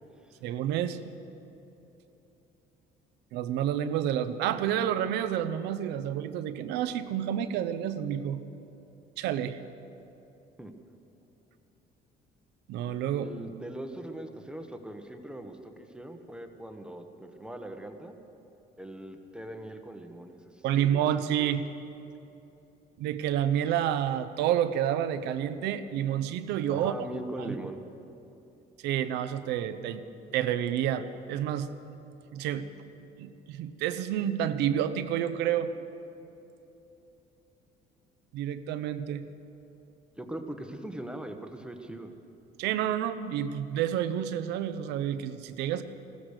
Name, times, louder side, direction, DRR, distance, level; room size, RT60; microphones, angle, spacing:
voice 1, 0.4-1.0 3.3-8.4 9.2-9.6 12.7-13.3 20.6-21.7 23.0-26.9 27.4-27.5 28.8-30.0 30.3-31.7 32.3-32.7 33.2-35.7 38.3-39.2 42.6-45.8, right 10 dB, 85° right, 12 dB, 0.8 m, -29 dB
voice 2, 13.1-18.2 18.8-21.0 26.7-27.8 40.2-42.1, right 1 dB, 5° right, 5 dB, 1.2 m, -41 dB
16.0 x 13.5 x 6.6 m, 3.0 s
cardioid pair, 110°, 17 cm